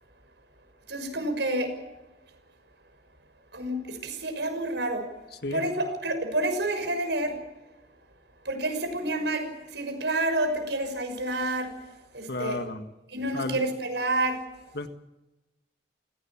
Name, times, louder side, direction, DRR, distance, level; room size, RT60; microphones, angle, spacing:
voice 1, 0.9-1.7 3.5-5.1 5.5-7.4 8.4-11.7 12.1-12.6 13.1-14.4, right 1 dB, 75° right, 6 dB, 6.2 m, -29 dB
voice 2, 12.3-12.9 13.3-13.6 14.7-14.9, left 2 dB, 60° left, 7 dB, 1.7 m, -32 dB
29.0 x 17.0 x 7.2 m, 1.0 s
head